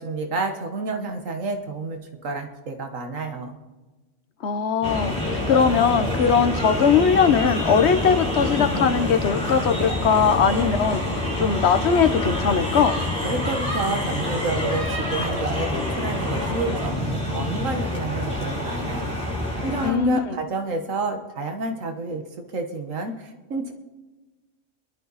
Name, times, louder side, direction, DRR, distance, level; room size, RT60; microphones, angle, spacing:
voice 1, 0.0-3.6 13.2-19.2 19.6-22.2 22.5-23.7, right 3 dB, 85° right, 5 dB, 1.8 m, -29 dB
voice 2, 4.4-13.0 19.8-20.4, left 6 dB, 60° left, 9 dB, 1.2 m, -20 dB
sound 1, 4.8-19.9, left 1 dB, 5° left, 6.9 m, -26 dB
30.0 x 11.5 x 4.1 m, 1.3 s
omnidirectional pair, 1.3 m